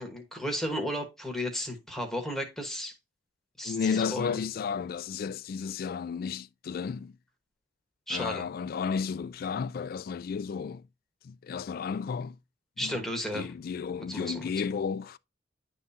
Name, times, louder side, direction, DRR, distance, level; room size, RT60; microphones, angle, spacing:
voice 1, 0.0-2.9 3.6-4.3 8.1-8.4 12.8-13.5 14.1-14.5, equal, ahead, 1.2 m, -34 dB
voice 2, 3.6-7.2 8.1-10.8 11.2-12.4 12.8-13.1 13.3-15.2, left 6 dB, 50° left, 0.3 m, -33 dB
10.5 x 3.6 x 2.7 m
head